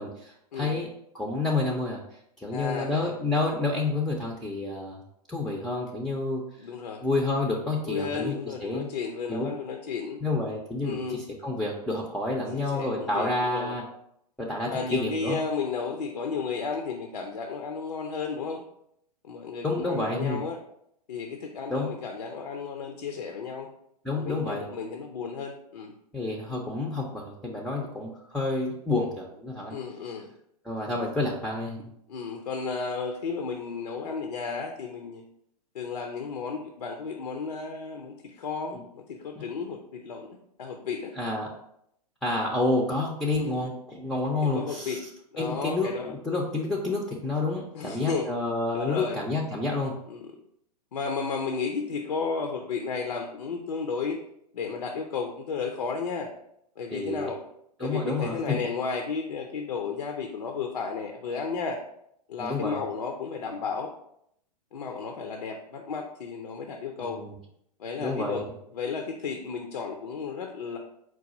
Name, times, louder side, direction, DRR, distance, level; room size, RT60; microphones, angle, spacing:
voice 1, 0.0-2.0 2.4-5.0 5.3-6.4 7.0-8.9 9.3-9.5 10.2-13.8 14.4-15.4 19.6-20.4 21.7-21.9 24.0-24.7 26.1-29.8 30.6-31.8 38.7-38.8 41.2-41.5 42.2-45.0 45.4-50.0 56.9-57.3 57.8-58.6 62.4-62.8 67.0-67.3 68.0-68.4, left 2 dB, ahead, -1 dB, 0.4 m, -29 dB
voice 2, 2.5-3.1 6.6-7.0 7.8-10.2 10.8-11.2 12.5-13.8 14.7-18.6 19.2-20.6 21.1-23.7 24.1-26.0 29.7-30.3 32.1-35.2 35.7-41.1 43.3-43.7 44.5-45.0 45.3-46.1 47.7-48.3 48.7-49.2 50.1-50.3 50.9-54.2 54.5-56.3 56.8-57.4 57.8-61.8 62.3-63.9 64.7-67.2 67.8-68.5 68.7-70.8, left 5 dB, 80° left, 3 dB, 0.6 m, -33 dB
4.7 x 2.3 x 4.0 m, 0.74 s
hypercardioid pair, 110°, 20 cm